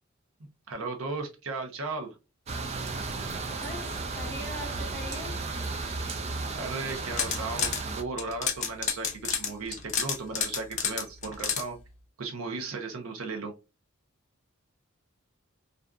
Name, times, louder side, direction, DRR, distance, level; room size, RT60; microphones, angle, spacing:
voice 1, 0.7-2.2 6.5-11.8 12.2-13.5, right 3 dB, 80° right, 0.6 m, -36 dB
sound 1, 2.5-8.0, right 3 dB, 30° right, 0.3 m, -34 dB
voice 2, 3.6-5.4, left 1 dB, 10° left, 1.0 m, -41 dB
sound 2, 6.9-7.8 8.2-11.6, left 7 dB, 35° left, 0.4 m, -30 dB
2.5 x 2.3 x 2.3 m
head